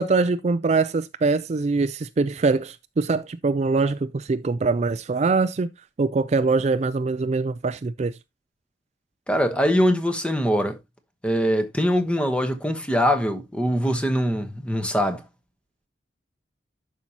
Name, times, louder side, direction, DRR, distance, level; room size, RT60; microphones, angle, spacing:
voice 1, 0.0-5.7 6.0-8.1, right 4 dB, 40° right, 0.4 m, -23 dB
voice 2, 9.3-10.8 11.2-15.2, equal, 5° left, 1.1 m, -22 dB
11.5 x 5.5 x 2.8 m
head